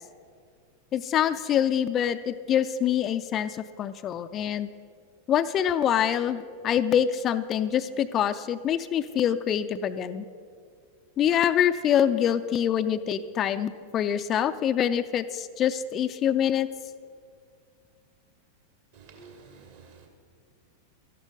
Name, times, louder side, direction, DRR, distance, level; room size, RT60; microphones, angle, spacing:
voice 1, 0.9-4.7 5.3-10.2 11.2-16.7, left 9 dB, 30° left, 11 dB, 0.4 m, -25 dB
voice 2, 18.9-20.1, right 4 dB, 55° right, 2 dB, 2.4 m, -50 dB
13.0 x 11.5 x 5.1 m, 2.1 s
figure-of-eight pair, 90°, 0 cm